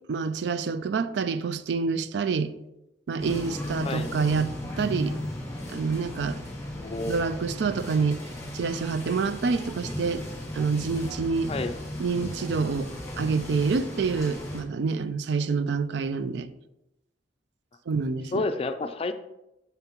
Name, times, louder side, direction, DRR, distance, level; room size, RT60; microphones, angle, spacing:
voice 1, 0.1-2.5 3.1-5.2 5.7-6.4 7.1-8.2 8.5-10.2 10.5-11.5 12.0-12.9 13.2-16.5 17.9-18.4, right 5 dB, 70° right, 0.4 m, -27 dB
sound 1, 3.2-14.6, left 1 dB, 15° left, 1.3 m, -36 dB
voice 2, 6.7-7.2 11.5-11.8 18.3-19.1, left 3 dB, 35° left, 0.4 m, -30 dB
7.0 x 5.8 x 2.9 m
head